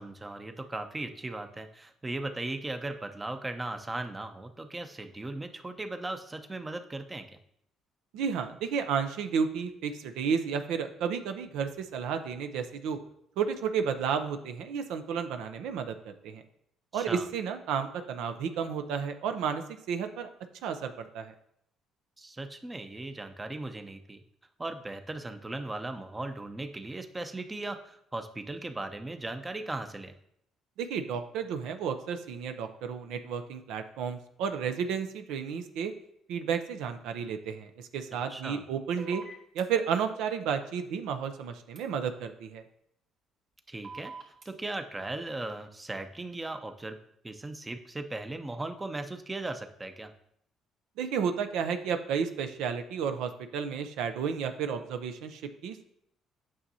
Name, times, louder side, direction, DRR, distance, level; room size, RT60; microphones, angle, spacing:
voice 1, 0.0-7.3 16.9-17.3 22.2-24.2 24.6-30.1 38.3-38.6 43.7-44.1 44.5-47.0 47.2-50.1, right 2 dB, 15° right, 8 dB, 0.6 m, -37 dB
voice 2, 8.1-13.0 13.4-16.4 16.9-20.3 20.6-21.3 30.8-35.9 36.3-39.2 39.5-42.6 51.0-55.8, right 7 dB, 85° right, 8 dB, 0.6 m, -32 dB
sound 1, 39.0-39.6 41.8-41.9 43.8-44.5, right 3 dB, 50° right, 2.2 m, -43 dB
8.7 x 6.3 x 2.8 m, 0.72 s
cardioid pair, 100°, 0 cm